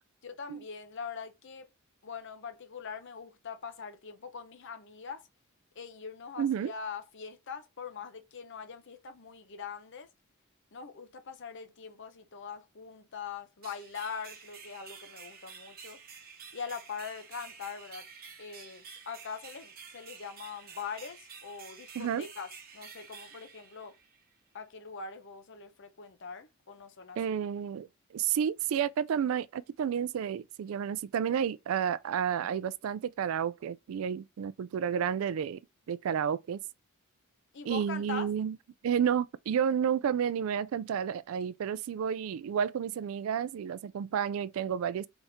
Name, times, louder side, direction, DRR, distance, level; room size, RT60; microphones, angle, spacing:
voice 1, 0.2-1.7 2.0-5.2 5.8-10.1 10.7-16.0 16.5-18.1 18.4-22.5 22.7-24.0 24.5-27.4 37.5-38.3, left 6 dB, 55° left, 0.7 m, -42 dB
voice 2, 6.4-6.7 22.0-22.3 27.2-35.6 35.9-36.6 37.7-38.6 38.8-45.1, right 8 dB, 70° right, 0.3 m, -31 dB
sound 1, 13.6-24.3, right 6 dB, 45° right, 0.9 m, -50 dB
4.1 x 3.6 x 3.4 m
head